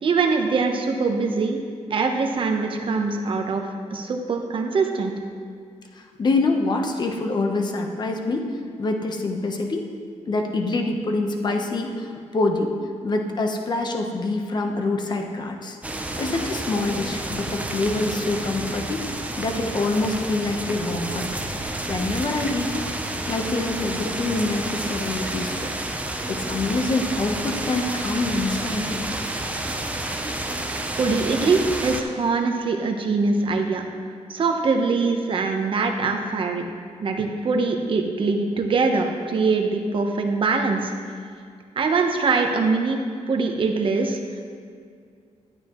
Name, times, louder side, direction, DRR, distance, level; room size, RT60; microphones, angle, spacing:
voice 1, 0.0-1.6 1.9-3.6 3.9-5.1 31.0-33.8 34.3-36.7 37.0-40.9 41.8-43.0 43.3-44.2, right 4 dB, 45° right, 3 dB, 0.9 m, -23 dB
voice 2, 5.9-8.5 8.8-9.9 10.3-12.7 13.0-15.8 16.2-19.1 19.4-22.9 23.3-25.7 26.3-29.1, left 2 dB, 35° left, 3 dB, 0.9 m, -25 dB
sound 1, 15.8-32.0, right 1 dB, 10° right, 0.7 m, -30 dB
12.0 x 9.3 x 3.1 m, 2.2 s
cardioid pair, 125°, 12 cm